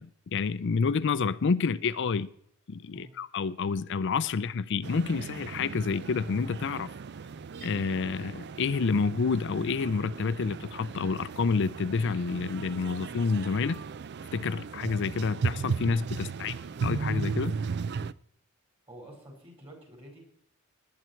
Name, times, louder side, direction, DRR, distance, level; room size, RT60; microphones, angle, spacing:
voice 1, 0.0-2.3 2.7-6.9 7.6-13.8 14.3-16.5 16.8-17.6, left 5 dB, 60° left, 0.5 m, -29 dB
sound 1, 4.8-18.1, right 5 dB, 55° right, 0.4 m, -36 dB
voice 2, 16.2-16.7 18.9-20.2, right 1 dB, 30° right, 5.1 m, -49 dB
19.0 x 9.5 x 4.5 m
head